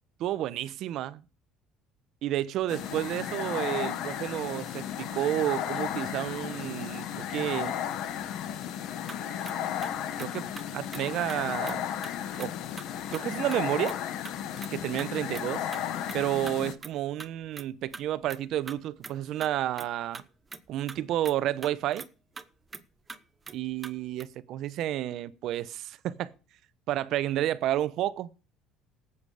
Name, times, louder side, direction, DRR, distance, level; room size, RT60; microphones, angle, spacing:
voice 1, 0.2-1.2 2.2-7.7 9.3-9.4 10.2-11.8 12.4-12.5 13.1-14.0 14.7-15.7 16.1-20.2 20.7-22.0 23.5-26.3 26.9-28.3, right 13 dB, 60° right, 0.8 m, -31 dB
sound 1, 2.7-16.7, left 10 dB, 65° left, 1.2 m, -34 dB
sound 2, 9.1-10.6 10.9-11.0 11.3-11.4 11.7-11.8 12.0-12.1 12.4-12.5 12.8-13.2 13.5-14.0 14.2-14.7 15.0-15.1 15.3-15.8 16.1-16.2 16.5-16.6 16.8-16.9 17.2-17.3 17.6-18.0 18.3-18.4 18.7-19.5 19.8-19.9 20.1-21.0 21.2-21.3 21.6-22.1 22.4-22.5 22.7-22.8 23.1-23.2 23.5-23.6 23.8-23.9 24.2-24.3, right 4 dB, 20° right, 0.9 m, -42 dB
18.0 x 8.2 x 4.9 m
cardioid pair, 125°, 0 cm